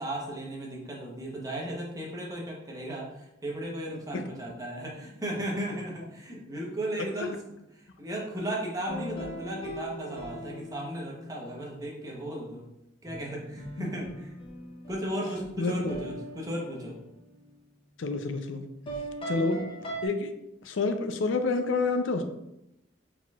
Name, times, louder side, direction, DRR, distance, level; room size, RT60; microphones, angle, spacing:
voice 1, 0.0-7.4 7.7-12.6 13.0-14.3 14.9-16.9, right 1 dB, 20° right, -2 dB, 0.9 m, -35 dB
sound 1, 8.9-11.7 13.1-17.6 18.9-20.1, right 1 dB, 30° left, 0.6 m, -40 dB
voice 2, 18.0-19.0 19.3-19.6 20.0-20.3 20.6-22.2, left 3 dB, 75° left, 8 dB, 0.5 m, -28 dB
4.4 x 4.1 x 2.4 m, 0.86 s
head